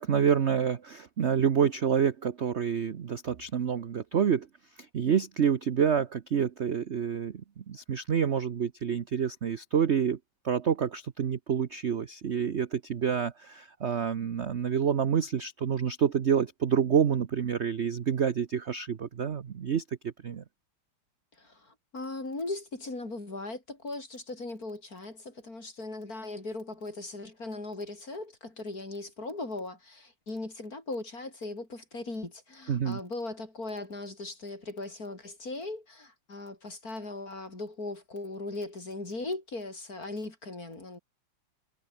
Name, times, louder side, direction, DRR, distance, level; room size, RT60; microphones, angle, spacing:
voice 1, 0.0-4.5 4.9-10.2 10.4-20.4 32.7-33.0, right 7 dB, 50° right, 0.9 m, -28 dB
voice 2, 21.4-41.0, left 2 dB, 45° left, 5.6 m, -38 dB
omnidirectional pair, 2.2 m